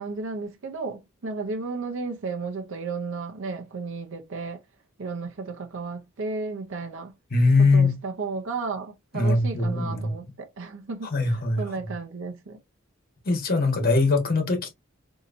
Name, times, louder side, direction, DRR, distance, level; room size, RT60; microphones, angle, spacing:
voice 1, 0.0-4.6 5.0-7.1 7.7-12.6, right 4 dB, 65° right, 0.6 m, -33 dB
voice 2, 7.3-7.9 9.1-10.1 11.1-11.7 13.2-14.7, left 3 dB, 45° left, 1.2 m, -21 dB
3.9 x 2.8 x 2.5 m
head